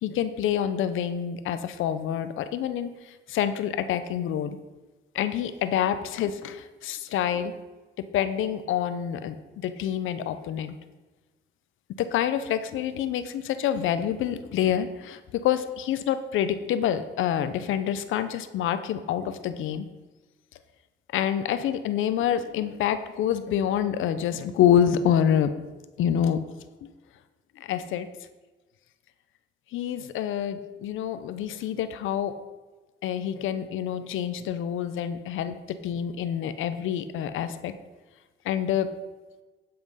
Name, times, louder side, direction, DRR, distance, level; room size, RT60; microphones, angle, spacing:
voice 1, 0.0-4.6 5.1-7.5 8.0-10.7 12.0-19.9 21.1-25.5 26.0-26.4 26.8-26.9 27.6-28.1 29.7-32.3 33.0-37.7 38.4-38.9, left 9 dB, 85° left, 11 dB, 0.8 m, -27 dB
11.0 x 5.9 x 5.6 m, 1.2 s
cardioid pair, 90°, 20 cm